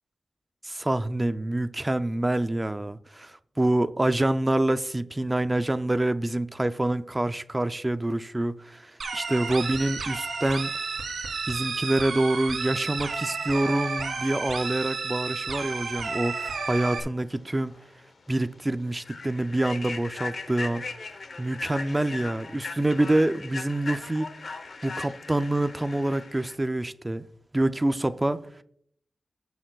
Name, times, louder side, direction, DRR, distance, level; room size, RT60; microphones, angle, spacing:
voice 1, 0.6-10.7 11.5-17.8 18.3-20.8 21.4-24.3 24.8-27.2 27.5-28.4, right 1 dB, 15° right, 0.4 m, -26 dB
sound 1, 9.0-17.0, right 4 dB, 80° right, 1.9 m, -32 dB
Human voice / Train, 17.7-17.8 18.3-18.4 19.0-26.5, left 4 dB, 55° left, 0.8 m, -38 dB
18.0 x 6.2 x 2.3 m
wide cardioid pair, 155°, 0 cm